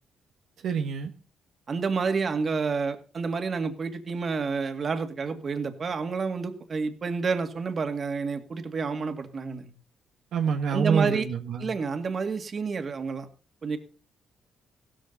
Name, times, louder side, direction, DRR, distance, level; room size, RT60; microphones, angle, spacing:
voice 1, 0.6-1.1 10.3-11.7, right 6 dB, 75° right, 4 dB, 1.4 m, -26 dB
voice 2, 1.7-9.7 10.7-11.3 11.6-13.3 13.6-13.8, right 5 dB, 45° right, 7 dB, 2.2 m, -29 dB
16.0 x 14.0 x 4.0 m, 0.34 s
cardioid pair, 90°, 0 cm